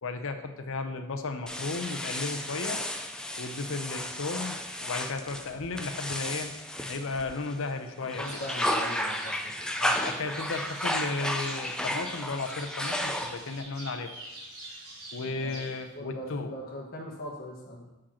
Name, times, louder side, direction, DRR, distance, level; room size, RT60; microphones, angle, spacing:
voice 1, 0.0-2.8 3.4-6.5 6.9-8.4 9.8-14.1 15.1-16.5, left 3 dB, 60° left, 7 dB, 0.6 m, -34 dB
sound 1, 1.5-7.6 8.0-13.6, equal, 5° left, 0.4 m, -33 dB
voice 2, 8.0-9.7 15.2-15.6 15.9-17.9, equal, 45° left, -3 dB, 1.2 m, -40 dB
sound 2, 8.2-15.9, right 1 dB, 75° right, 2.2 m, -46 dB
7.4 x 5.1 x 4.3 m, 1.0 s
head